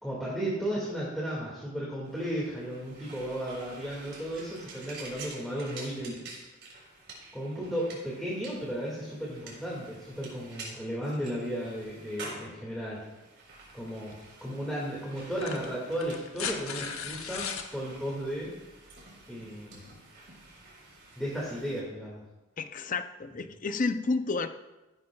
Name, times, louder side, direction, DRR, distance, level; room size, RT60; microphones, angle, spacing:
voice 1, 0.0-6.2 7.3-13.0 13.7-14.1 14.4-18.5 19.3-19.9 21.2-22.2, equal, ahead, -6 dB, 2.0 m, -34 dB
sound 1, 2.0-21.8, right 3 dB, 55° right, 3.9 m, -49 dB
sound 2, 14.1-14.2 15.2-17.7 19.2-19.3, left 6 dB, 85° left, 1.1 m, -37 dB
voice 2, 22.6-24.5, left 3 dB, 40° left, 9 dB, 0.5 m, -30 dB
15.5 x 10.5 x 2.3 m, 1.1 s
head